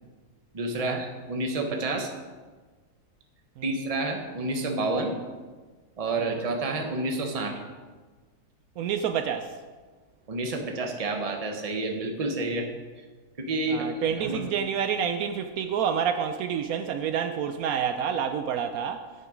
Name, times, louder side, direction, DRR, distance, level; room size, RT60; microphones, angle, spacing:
voice 1, 0.5-2.1 3.6-5.2 6.0-7.6 10.3-12.7 13.4-14.4, right 2 dB, 25° right, 3 dB, 1.0 m, -29 dB
voice 2, 8.8-9.5 13.7-19.1, right 8 dB, 75° right, 7 dB, 1.0 m, -28 dB
9.3 x 6.8 x 5.0 m, 1.4 s
omnidirectional pair, 1.6 m